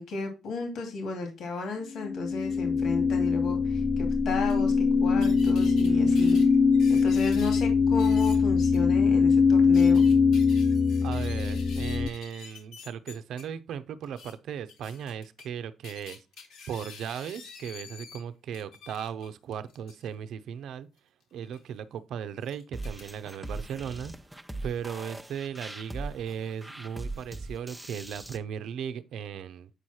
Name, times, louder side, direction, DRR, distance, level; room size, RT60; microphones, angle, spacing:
voice 1, 0.0-6.4 6.9-10.0, left 3 dB, 70° left, 2.6 m, -34 dB
sound 1, 2.0-12.1, left 5 dB, 20° left, 0.5 m, -22 dB
sound 2, 4.5-4.6 5.2-5.9 6.2-7.6 8.0-8.4 8.7-8.8 9.5-13.4 14.0-14.3 14.7-15.5 15.8-18.2 18.5-20.1 21.4-21.6 22.4-23.5, left 6 dB, 90° left, 2.6 m, -48 dB
voice 2, 5.9-6.6 11.0-16.2 16.7-20.9 21.3-24.1 24.6-29.7, right 8 dB, 75° right, 0.7 m, -37 dB
sound 3, 22.7-28.4, right 2 dB, 5° right, 0.8 m, -40 dB
8.3 x 4.8 x 4.3 m
cardioid pair, 90°, 0 cm